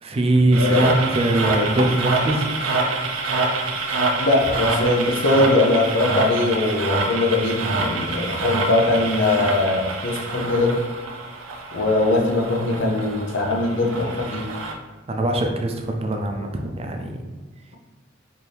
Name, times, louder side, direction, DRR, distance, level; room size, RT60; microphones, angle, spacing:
voice 1, 0.0-2.5 15.1-17.2, right 1 dB, 30° right, 3 dB, 0.4 m, -21 dB
sound 1, 0.5-14.7, right 3 dB, 90° right, 0.6 m, -26 dB
voice 2, 0.6-0.9 4.2-10.8 11.7-14.4, left 2 dB, 65° left, 0 dB, 0.7 m, -21 dB
4.4 x 2.6 x 3.3 m, 1.3 s
head